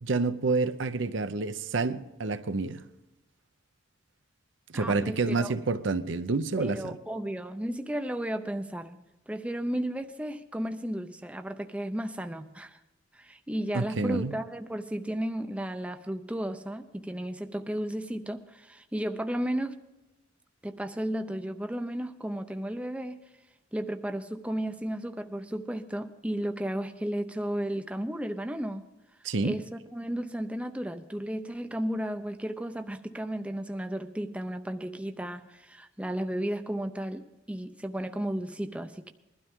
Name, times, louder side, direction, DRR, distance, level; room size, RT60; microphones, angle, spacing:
voice 1, 0.0-2.8 4.7-7.0 13.7-14.3 29.2-29.6, right 3 dB, 70° right, 0.7 m, -28 dB
voice 2, 4.7-5.6 6.6-9.0 9.3-12.8 13.1-19.8 20.6-23.2 23.7-28.8 29.4-37.2 37.5-39.1, right 1 dB, 5° right, 0.5 m, -34 dB
21.0 x 12.5 x 3.6 m
head